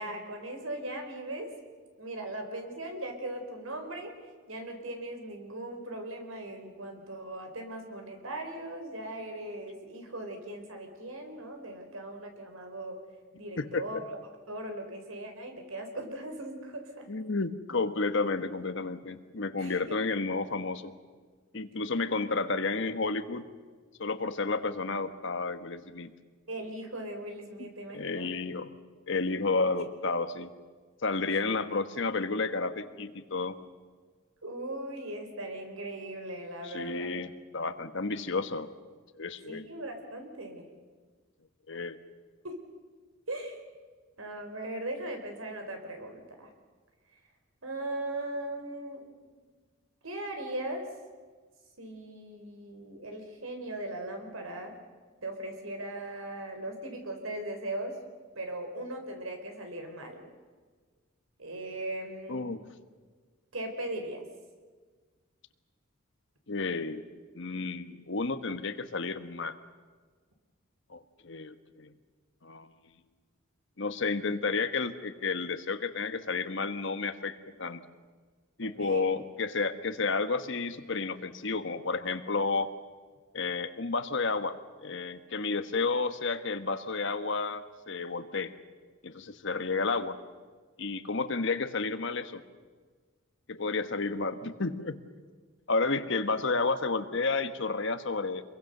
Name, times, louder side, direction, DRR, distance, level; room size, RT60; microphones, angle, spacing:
voice 1, 0.0-1.5 2.0-4.1 4.5-13.0 13.4-14.0 14.5-17.1 19.6-20.0 26.5-28.3 29.7-29.8 31.3-31.4 34.4-37.1 39.5-40.7 42.4-42.6 43.3-43.6 44.2-46.5 47.6-49.1 50.0-50.8 51.8-54.8 55.2-58.0 58.3-60.3 61.4-62.5 63.5-64.2 78.6-79.0, right 1 dB, 90° right, 5 dB, 4.2 m, -39 dB
voice 2, 13.6-14.0 17.1-20.9 21.5-23.4 24.0-26.1 27.6-28.7 29.1-30.5 31.0-33.6 36.6-38.7 39.2-39.6 41.7-42.0 62.3-62.6 66.5-67.1 67.3-69.6 70.9-71.9 72.4-72.7 73.8-77.8 78.6-82.7 83.3-84.6 84.8-88.5 89.0-90.2 90.8-92.4 93.5-95.0 95.7-98.4, left 3 dB, 60° left, 10 dB, 1.3 m, -31 dB
26.5 x 22.5 x 6.7 m, 1.5 s
head